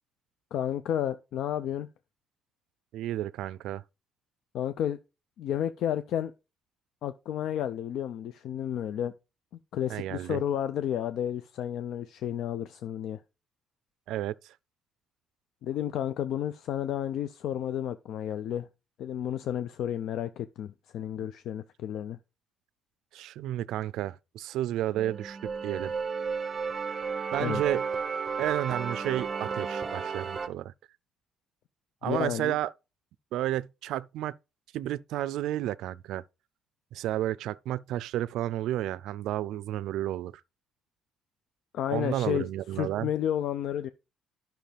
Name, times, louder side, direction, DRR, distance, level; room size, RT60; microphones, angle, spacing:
voice 1, 0.5-1.9 4.5-5.0 5.4-6.3 7.0-9.1 9.7-13.2 15.6-18.7 19.0-22.2 27.4-27.6 32.0-32.6 41.7-43.9, left 10 dB, 60° left, 0.4 m, -31 dB
voice 2, 2.9-3.8 9.9-10.4 14.1-14.5 21.2-21.3 23.1-25.9 27.3-27.8 28.4-30.7 32.0-32.7 33.3-34.4 34.7-36.2 36.9-40.4 41.9-43.1, right 13 dB, 80° right, 0.4 m, -32 dB
sound 1, 24.9-30.5, right 5 dB, 25° right, 0.5 m, -33 dB
11.5 x 5.8 x 3.4 m
cardioid pair, 180°, 0 cm